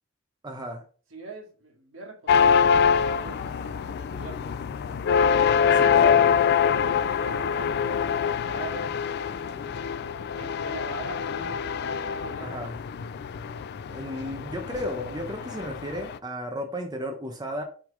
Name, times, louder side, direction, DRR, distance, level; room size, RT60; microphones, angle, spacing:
voice 1, 0.4-0.8 5.7-6.2 12.4-12.7 13.9-17.6, equal, 20° right, 0.8 m, -34 dB
voice 2, 1.1-4.4 5.8-6.3 6.7-9.0 9.4-9.8 10.3-11.6 12.0-12.6, right 3 dB, 70° right, 2.0 m, -43 dB
sound 1, 2.3-16.2, left 7 dB, 55° left, 0.3 m, -25 dB
6.3 x 3.5 x 4.8 m
head